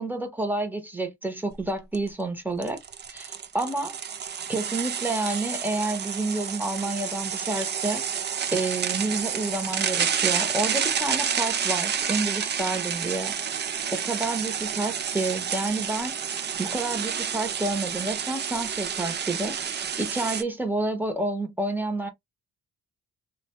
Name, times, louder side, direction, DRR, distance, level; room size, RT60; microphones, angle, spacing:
voice 1, 0.0-2.8 3.1-4.0 4.5-8.0 8.5-13.4 13.9-16.1 16.6-22.1, right 2 dB, 5° right, 0.8 m, -29 dB
sound 1, 1.5-1.6 1.9-2.1 2.6-20.4, right 7 dB, 35° right, 0.4 m, -29 dB
2.8 x 2.2 x 2.9 m
cardioid pair, 90°, 30 cm